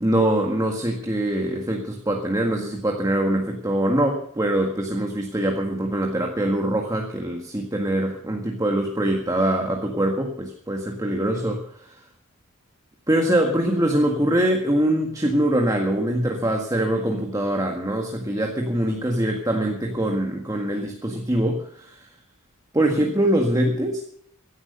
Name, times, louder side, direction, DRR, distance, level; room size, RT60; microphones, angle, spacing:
voice 1, 0.0-11.6 13.1-22.0 22.7-24.0, right 1 dB, 15° right, 1 dB, 1.8 m, -23 dB
16.5 x 11.0 x 6.7 m, 0.64 s
head